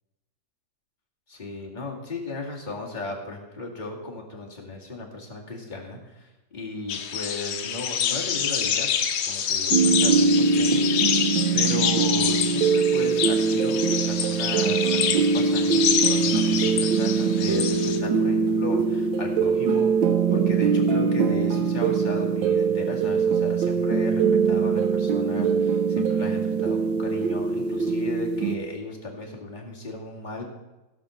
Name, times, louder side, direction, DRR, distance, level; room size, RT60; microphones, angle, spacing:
voice 1, 1.3-8.9 9.3-11.2 11.5-19.9 20.3-30.4, left 2 dB, 25° left, -2 dB, 2.1 m, -36 dB
sound 1, 6.9-18.0, left 8 dB, 65° left, 1.3 m, -27 dB
sound 2, 9.7-28.6, right 5 dB, 80° right, 1.5 m, -22 dB
16.0 x 5.7 x 6.3 m, 1.0 s
omnidirectional pair, 2.1 m